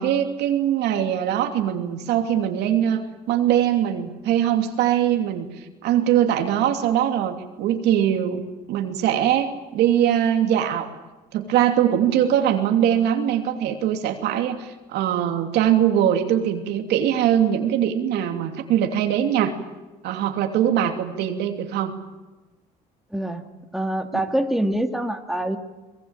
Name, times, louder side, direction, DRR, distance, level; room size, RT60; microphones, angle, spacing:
voice 1, 0.0-5.5 5.8-8.4 8.7-10.9 11.3-19.5 20.0-21.9, right 10 dB, 85° right, 5 dB, 2.9 m, -22 dB
voice 2, 23.1-23.4 23.7-25.6, right 1 dB, ahead, 4 dB, 2.1 m, -25 dB
24.0 x 21.5 x 9.0 m, 1.2 s
cardioid pair, 110°, 17 cm